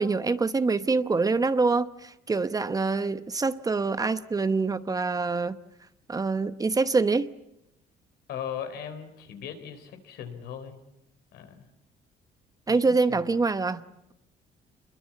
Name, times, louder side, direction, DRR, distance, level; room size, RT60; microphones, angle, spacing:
voice 1, 0.0-5.6 6.1-7.3 12.7-13.8, right 4 dB, 20° right, 0.9 m, -25 dB
voice 2, 8.3-10.8 11.3-11.6 12.7-12.8 13.1-13.2, left 8 dB, 75° left, 4.0 m, -38 dB
26.5 x 22.0 x 8.5 m
cardioid pair, 110°, 17 cm